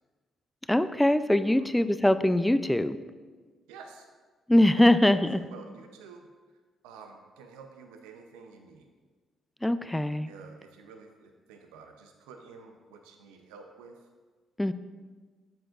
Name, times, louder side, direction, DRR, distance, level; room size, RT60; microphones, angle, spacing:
voice 1, 0.7-3.0 4.5-5.3 9.6-10.3 14.6-14.7, left 1 dB, 10° left, 12 dB, 0.4 m, -22 dB
voice 2, 3.7-4.1 4.8-6.3 6.8-8.9 10.3-14.0, right 5 dB, 80° right, 4 dB, 0.6 m, -49 dB
11.0 x 7.8 x 2.5 m, 1.4 s
hypercardioid pair, 45°, 0 cm